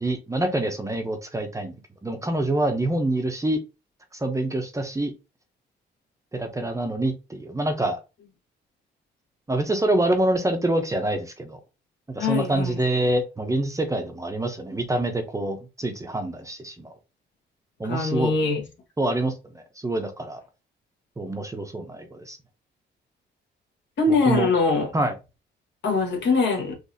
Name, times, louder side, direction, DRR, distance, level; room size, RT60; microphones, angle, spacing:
voice 1, 0.0-1.8 2.0-3.6 4.1-5.1 6.3-8.0 9.5-11.6 12.1-16.9 17.8-18.3 19.0-20.4 21.2-22.4 24.3-24.5 24.9-25.1, right 1 dB, 15° right, 0.7 m, -26 dB
voice 2, 12.2-12.8 17.8-18.6 24.0-24.9 25.8-26.7, left 4 dB, 65° left, 1.5 m, -22 dB
4.0 x 2.6 x 2.6 m
cardioid pair, 90°, 20 cm